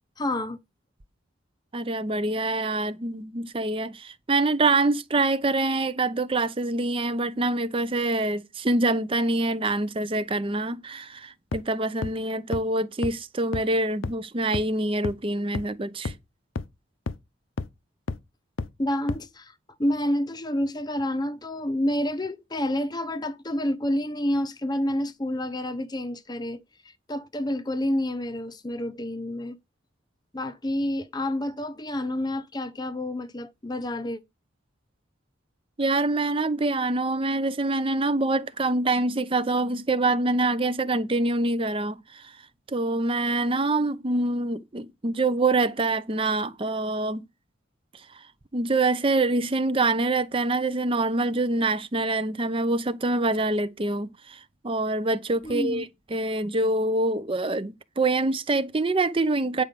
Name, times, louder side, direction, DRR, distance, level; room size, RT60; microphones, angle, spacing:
voice 1, 0.2-0.6 18.8-19.5 19.8-29.6 30.3-34.2 55.4-55.8, left 1 dB, 20° left, 0.7 m, -29 dB
voice 2, 1.7-16.1 35.8-42.4 42.7-47.3 48.1-48.2 48.5-59.6, right 2 dB, 25° right, 0.6 m, -25 dB
sound 1, 11.5-11.6 12.0-12.1 12.5-12.6 13.0-13.1 13.5-13.6 14.0-14.1 14.5-14.6 15.0-15.1 15.5-15.6 16.1-16.2 16.6-16.7 17.1-17.2 17.6-17.7 18.1-18.2 18.6-18.7 19.1-19.2, left 3 dB, 80° left, 0.7 m, -29 dB
9.5 x 4.9 x 6.8 m
head